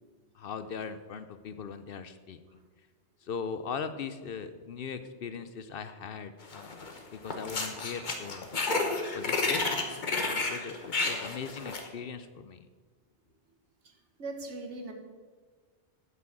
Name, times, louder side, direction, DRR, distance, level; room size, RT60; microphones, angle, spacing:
voice 1, 0.3-2.4 3.2-8.5 9.1-9.6 10.1-12.7, left 6 dB, 60° left, 11 dB, 0.7 m, -39 dB
sound 1, 6.5-7.0 7.3-11.9, left 3 dB, 45° left, 1.2 m, -31 dB
voice 2, 14.2-14.9, right 2 dB, 80° right, 4 dB, 1.6 m, -39 dB
9.3 x 6.1 x 7.5 m, 1.5 s
omnidirectional pair, 1.2 m